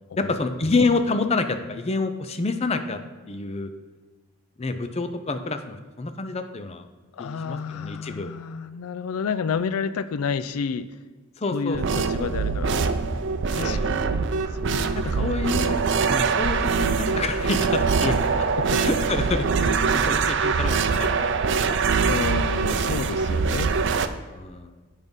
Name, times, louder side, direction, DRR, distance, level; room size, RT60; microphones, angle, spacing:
voice 1, 0.2-3.0 3.3-3.7 4.6-6.9 7.2-8.3 11.4-12.4 13.5-13.9 15.0-15.8 16.1-18.5 18.8-21.7 24.3-24.7, left 3 dB, 30° left, 8 dB, 0.5 m, -28 dB
voice 2, 7.1-10.9 11.5-12.9 13.4-14.2 14.6-15.3 18.0-18.2 18.6-18.8 22.1-23.7, left 6 dB, 90° left, 14 dB, 0.4 m, -30 dB
sound 1, 11.7-24.1, right 5 dB, 55° right, 0.5 m, -23 dB
8.4 x 5.2 x 5.3 m, 1.4 s
head